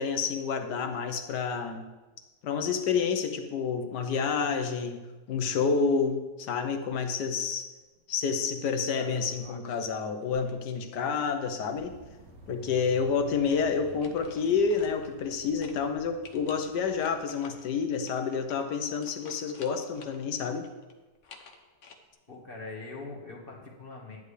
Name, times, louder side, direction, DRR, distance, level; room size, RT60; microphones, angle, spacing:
voice 1, 0.0-1.8 2.4-5.0 5.3-7.7 8.1-11.9 12.5-20.7, left 5 dB, 70° left, 6 dB, 1.5 m, -29 dB
sound 1, 9.0-9.9 10.2-11.5 13.7-15.4 15.6-15.8 16.2-20.2 20.5-22.0, left 5 dB, 50° left, 1.1 m, -51 dB
sound 2, 11.7-18.5, right 3 dB, 45° right, 1.2 m, -53 dB
voice 2, 22.3-24.2, left 3 dB, 30° left, -2 dB, 1.7 m, -42 dB
10.5 x 10.5 x 3.3 m, 1.2 s
omnidirectional pair, 1.9 m